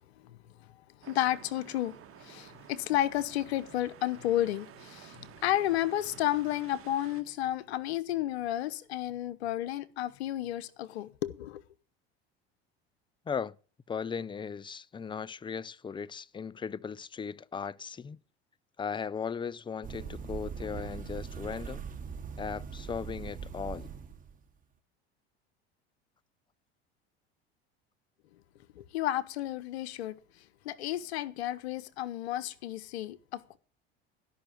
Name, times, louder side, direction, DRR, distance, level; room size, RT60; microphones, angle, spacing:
voice 1, 1.0-11.6 28.7-30.2 30.6-33.6, left 13 dB, 80° left, 1.0 m, -32 dB
sound 1, 1.0-7.2, right 10 dB, 45° right, 1.6 m, -52 dB
voice 2, 13.9-18.2 18.8-21.9 22.4-23.9, left 6 dB, 15° left, 0.5 m, -37 dB
sound 2, 19.8-24.4, right 6 dB, 25° right, 2.8 m, -41 dB
13.0 x 6.0 x 9.2 m
hypercardioid pair, 85°, 31 cm